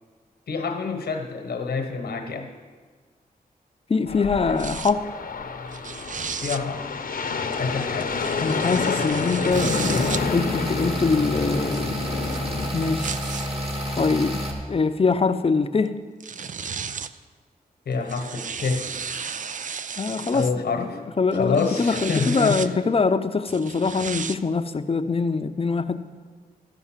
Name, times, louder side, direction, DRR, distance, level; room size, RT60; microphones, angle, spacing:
voice 1, 0.5-2.5 6.4-6.9 7.5-8.2 17.9-18.9 20.3-21.0 21.3-22.7, left 4 dB, 85° left, 5 dB, 1.2 m, -27 dB
voice 2, 3.9-5.1 8.4-12.0 12.7-13.1 14.0-15.9 20.0-20.4 20.8-20.9 21.2-26.0, left 4 dB, 35° left, 10 dB, 0.6 m, -23 dB
sound 1, 4.1-12.7, left 4 dB, 65° left, 0.9 m, -29 dB
sound 2, 4.6-4.9 5.7-6.6 7.5-10.2 11.1-13.5 14.3-14.4 15.9-16.0 16.2-17.2 17.9-20.5 21.3-22.7 23.5-24.4, right 6 dB, 55° right, 0.4 m, -34 dB
sound 3, 9.5-14.5, equal, 40° right, 2.2 m, -29 dB
13.5 x 5.4 x 7.4 m, 1.5 s
cardioid pair, 55°, 16 cm